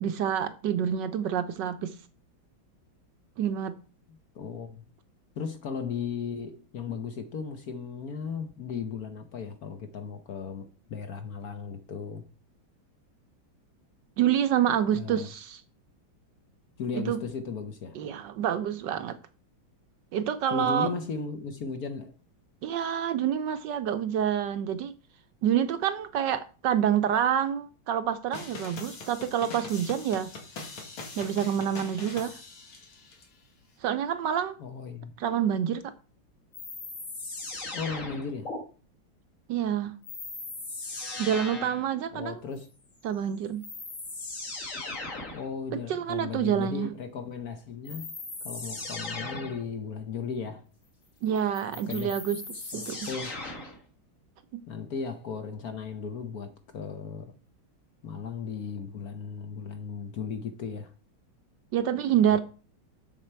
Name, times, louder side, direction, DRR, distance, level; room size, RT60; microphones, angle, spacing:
voice 1, 0.0-1.9 3.4-3.8 14.2-15.6 16.9-17.2 18.0-19.2 20.1-20.9 22.6-24.9 25.4-30.3 31.2-32.4 33.8-34.6 35.2-35.9 39.5-39.9 41.2-42.4 43.0-43.6 45.9-46.9 51.2-53.0 54.5-54.6 61.7-62.4, right 9 dB, 70° right, 1.2 m, -27 dB
voice 2, 4.3-4.8 5.4-12.3 14.9-15.3 16.8-18.0 20.5-22.1 34.6-35.2 37.7-38.5 42.1-42.7 45.3-48.2 48.4-50.7 51.9-52.2 52.7-53.4 54.7-57.4 58.0-60.9, left 5 dB, 60° left, 1.1 m, -36 dB
sound 1, 28.3-33.2, left 3 dB, 80° left, 2.8 m, -42 dB
sound 2, 36.5-38.6 40.0-41.9 43.1-43.2 43.6-45.5 47.9-49.7 51.4-53.8, left 3 dB, 40° left, 2.1 m, -38 dB
7.5 x 7.0 x 4.5 m
omnidirectional pair, 2.2 m